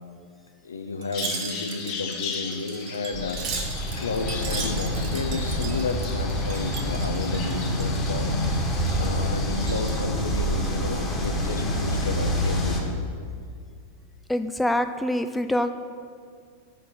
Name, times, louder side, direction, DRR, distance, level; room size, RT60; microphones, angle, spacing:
voice 1, 0.6-3.4 4.0-8.3 9.0-13.0, left 4 dB, 70° left, 6 dB, 0.6 m, -32 dB
Wind chime, 1.0-8.1 8.4-9.2 9.5-10.1 10.5-11.4 11.8-12.0, right 6 dB, 40° right, 0.9 m, -38 dB
Bird vocalization bird call bird song, 1.1-10.0, left 6 dB, 45° left, 0.9 m, -38 dB
sound 1, 3.1-12.8, equal, 20° left, 1.4 m, -27 dB
voice 2, 14.3-15.7, left 1 dB, 5° left, 8 dB, 0.3 m, -25 dB
6.6 x 5.0 x 5.8 m, 2.1 s
figure-of-eight pair, 90°, 0 cm